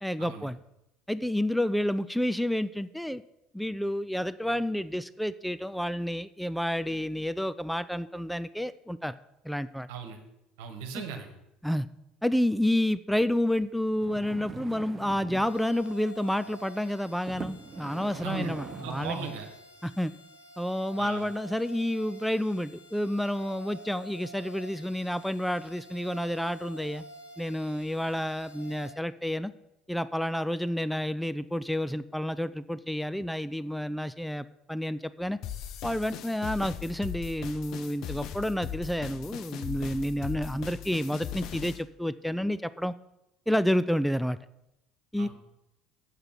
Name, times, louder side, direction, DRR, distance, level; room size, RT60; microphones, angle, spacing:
voice 1, 0.0-0.6 1.1-3.2 3.5-9.2 9.4-9.9 10.9-11.0 11.6-11.9 12.2-19.3 19.8-20.1 20.6-27.0 27.4-29.5 29.9-35.4 35.8-42.9 43.5-44.4 45.1-45.3, left 1 dB, ahead, 14 dB, 0.4 m, -30 dB
voice 2, 10.6-11.3 18.2-18.5 18.8-19.5 21.0-21.2 45.2-45.3, right 6 dB, 70° right, 5 dB, 1.4 m, -37 dB
sound 1, 13.9-15.6 16.4-16.6 17.3-19.3 19.9-20.0, right 5 dB, 35° right, 0.8 m, -42 dB
sound 2, 15.4-28.9, right 1 dB, 80° left, 1.6 m, -49 dB
sound 3, 35.4-41.8, left 10 dB, 55° left, 0.7 m, -39 dB
8.1 x 6.8 x 5.8 m, 0.87 s
hypercardioid pair, 65°, 0 cm